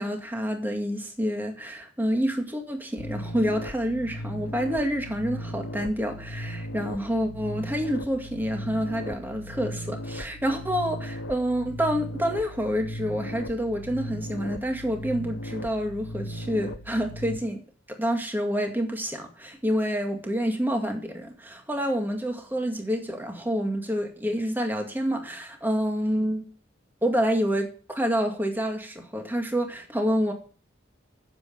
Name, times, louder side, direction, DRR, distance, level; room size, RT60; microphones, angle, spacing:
voice 1, 0.0-17.6 17.9-26.5 27.0-30.3, equal, 10° right, 2.1 m, -28 dB
sound 1, 3.0-17.4, equal, 80° left, 1.1 m, -37 dB
9.7 x 7.5 x 9.1 m
head